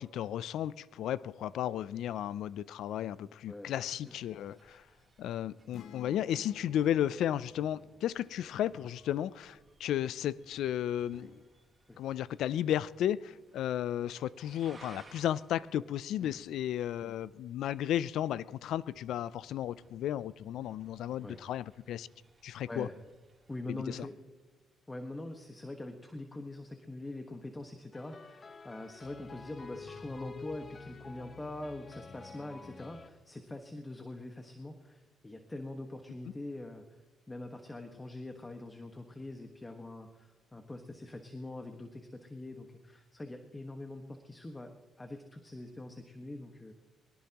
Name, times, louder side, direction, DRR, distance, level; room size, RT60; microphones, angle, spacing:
voice 1, 0.0-4.8 5.2-11.4 12.0-22.1 22.4-22.9 23.7-24.1, left 11 dB, 80° left, 0.4 m, -34 dB
voice 2, 3.5-4.0 8.8-8.9 11.9-12.0 16.2-16.3 21.2-21.4 22.7-22.9 23.5-24.1 24.9-37.0 37.3-46.7, left 2 dB, 20° left, 1.4 m, -44 dB
sound 1, 4.1-23.7, right 3 dB, 25° right, 3.2 m, -63 dB
sound 2, 5.7-9.5, left 7 dB, 65° left, 0.9 m, -55 dB
sound 3, 27.9-33.1, left 4 dB, 35° left, 1.1 m, -48 dB
22.5 x 19.0 x 3.0 m
cardioid pair, 90°, 0 cm